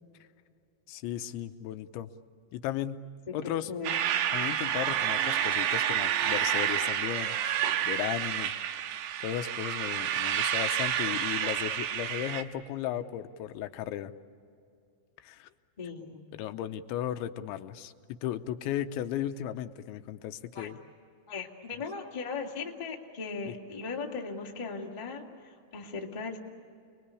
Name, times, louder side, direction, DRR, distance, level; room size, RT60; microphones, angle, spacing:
voice 1, 0.9-2.1 2.5-3.0 3.3-3.7 4.3-7.4 7.9-8.5 9.2-14.1 15.2-15.5 16.3-17.9 18.2-20.8 23.5-23.6, left 11 dB, 90° left, 8 dB, 3.2 m, -35 dB
voice 2, 3.3-3.9 15.8-16.2 20.5-20.7 21.3-26.4, left 4 dB, 20° left, -1 dB, 1.0 m, -38 dB
sound 1, 3.8-12.4, right 10 dB, 75° right, 3.2 m, -29 dB
30.0 x 21.5 x 8.4 m, 2.4 s
omnidirectional pair, 5.2 m